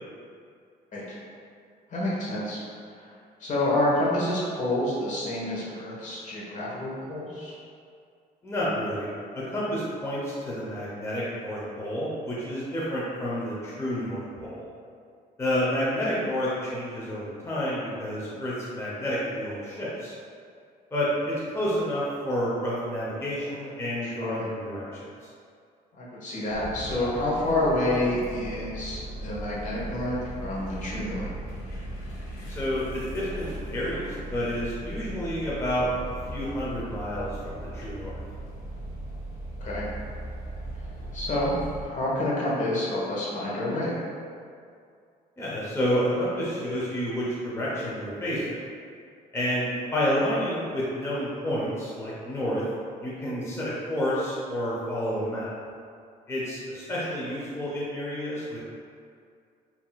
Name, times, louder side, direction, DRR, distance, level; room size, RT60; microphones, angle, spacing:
voice 1, 1.9-2.6 2.9-3.1 3.4-7.5 24.0-24.5 26.0-30.1 30.4-31.3 39.6-39.9 41.1-41.5 41.8-43.9, left 1 dB, 45° left, -6 dB, 1.2 m, -28 dB
voice 2, 8.4-9.1 9.3-14.6 15.4-20.1 20.9-25.0 32.5-38.2 45.4-48.6 49.3-52.6 53.0-55.5 56.3-58.6, equal, 15° left, -8 dB, 0.8 m, -29 dB
sound 1, 26.5-41.8, right 1 dB, 75° left, 1.1 m, -38 dB
5.8 x 2.9 x 2.3 m, 2.3 s
cardioid pair, 110°, 17 cm